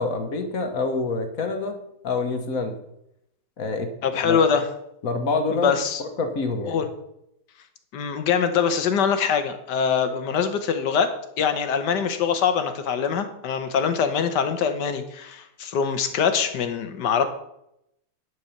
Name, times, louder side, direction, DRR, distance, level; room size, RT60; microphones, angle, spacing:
voice 1, 0.0-1.8 2.0-2.7 3.6-3.9 4.2-4.4 5.0-6.8, left 3 dB, 55° left, 6 dB, 1.5 m, -26 dB
voice 2, 4.0-4.6 5.6-6.0 6.7-6.9 7.9-17.2, left 7 dB, 80° left, 9 dB, 1.6 m, -23 dB
11.0 x 4.6 x 7.1 m, 0.81 s
omnidirectional pair, 1.8 m